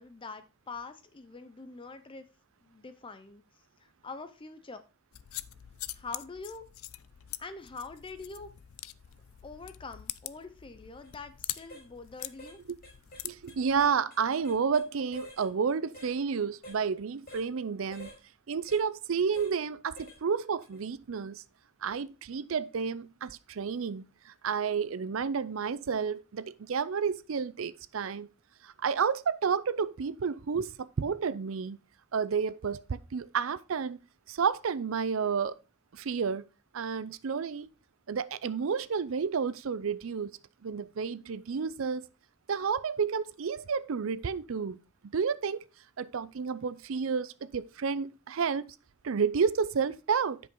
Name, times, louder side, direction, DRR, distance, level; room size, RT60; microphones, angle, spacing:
voice 1, 0.0-2.2 2.6-3.4 3.8-4.8 5.9-6.6 7.4-8.5 9.4-12.6, left 4 dB, 25° left, 0.5 m, -44 dB
sound 1, 5.1-13.9, left 15 dB, 85° left, 0.4 m, -44 dB
sound 2, 10.9-11.1 11.6-11.9 12.2-12.6 12.8-14.9 15.1-15.5 15.9-16.1 16.6-16.8 17.3-17.5 17.9-18.2 18.7-18.8 19.3-19.5 20.0-20.2 20.6-20.8, equal, 45° left, 3.8 m, -48 dB
voice 2, 13.2-18.1 18.5-21.4 21.8-28.3 28.6-31.8 32.1-34.0 34.3-35.6 35.9-36.4 36.7-37.7 38.1-40.3 40.6-42.1 42.5-44.8 45.0-45.6 46.0-48.6 49.0-50.4, right 6 dB, 75° right, 0.5 m, -31 dB
9.5 x 5.3 x 3.7 m
head